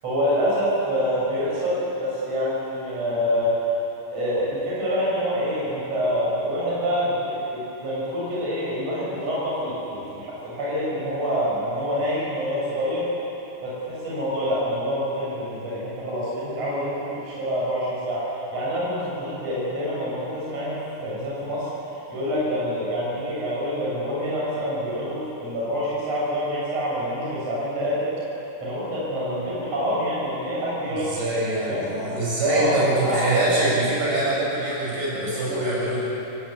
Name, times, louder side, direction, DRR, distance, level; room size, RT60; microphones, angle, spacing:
voice 1, 0.0-3.6 4.1-13.1 13.6-21.7 22.1-28.1 28.6-33.2, equal, 35° right, -7 dB, 7.9 m, -26 dB
voice 2, 30.9-36.0, right 1 dB, 60° right, -7 dB, 9.5 m, -24 dB
28.0 x 18.0 x 8.5 m, 3.0 s
omnidirectional pair, 5.1 m